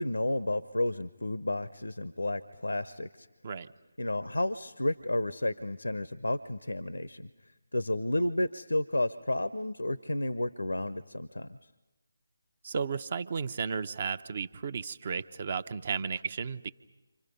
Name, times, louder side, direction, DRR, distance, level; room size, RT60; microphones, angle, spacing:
voice 1, 0.0-3.3 4.0-7.3 7.7-11.6, left 1 dB, 85° left, 14 dB, 0.8 m, -31 dB
voice 2, 12.6-16.7, right 5 dB, 40° right, 13 dB, 0.7 m, -34 dB
29.0 x 26.5 x 5.4 m, 1.1 s
figure-of-eight pair, 155°, 0 cm